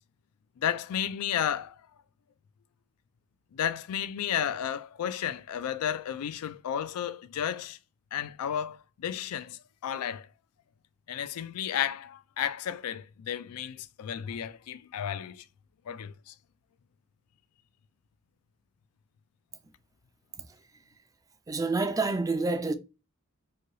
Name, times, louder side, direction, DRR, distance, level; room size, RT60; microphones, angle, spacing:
voice 1, 0.6-1.8 3.5-7.8 8.1-10.3 11.1-15.4 15.9-16.3, left 9 dB, 75° left, 0.3 m, -33 dB
voice 2, 21.5-22.7, right 3 dB, 15° right, 0.3 m, -28 dB
3.2 x 2.7 x 2.6 m
head